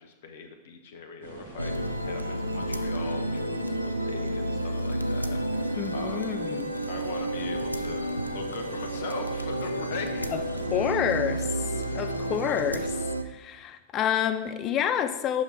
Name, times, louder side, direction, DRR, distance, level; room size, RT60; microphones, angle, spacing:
voice 1, 0.0-6.3 6.9-10.3, left 5 dB, 60° left, 5 dB, 0.8 m, -41 dB
sound 1, 1.2-13.1, right 2 dB, 65° right, 1.6 m, -44 dB
sound 2, 1.6-13.2, right 1 dB, 90° right, 0.3 m, -31 dB
voice 2, 5.8-6.7 10.3-10.4 10.7-11.5 11.9-12.9 13.3-15.4, left 9 dB, 35° left, 9 dB, 0.5 m, -28 dB
5.8 x 5.5 x 4.5 m, 1.1 s
figure-of-eight pair, 90°, 0 cm